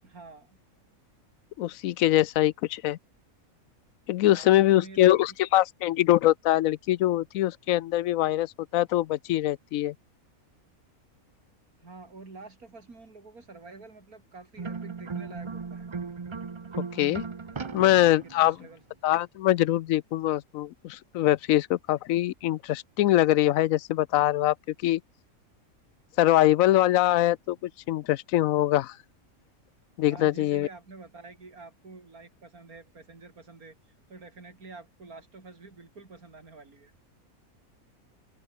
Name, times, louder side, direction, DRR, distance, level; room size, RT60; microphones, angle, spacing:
voice 1, 0.0-0.6 4.3-5.1 11.8-15.9 17.6-17.9 18.4-18.8 30.1-33.8 34.1-36.9, right 3 dB, 90° right, 4.0 m, -48 dB
voice 2, 1.6-3.0 4.1-9.9 17.0-17.2 17.7-18.6 19.0-24.5 24.8-25.0 26.2-28.9 30.0-30.7, left 14 dB, 70° left, 0.9 m, -23 dB
sound 1, 14.6-18.6, right 5 dB, 30° right, 0.5 m, -37 dB
open air
omnidirectional pair, 1.5 m